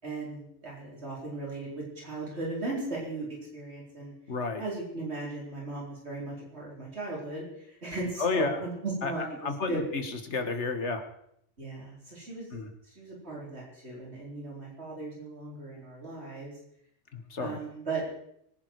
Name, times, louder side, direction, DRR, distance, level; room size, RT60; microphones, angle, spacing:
voice 1, 0.0-4.1 4.6-9.9 11.6-12.5 12.8-16.5 17.4-18.1, right 2 dB, 65° right, -4 dB, 4.7 m, -37 dB
voice 2, 4.3-4.6 8.2-8.6 9.0-11.0 12.5-12.7 17.1-17.6, left 4 dB, 75° left, 7 dB, 2.0 m, -31 dB
24.0 x 11.0 x 4.7 m, 0.73 s
omnidirectional pair, 1.2 m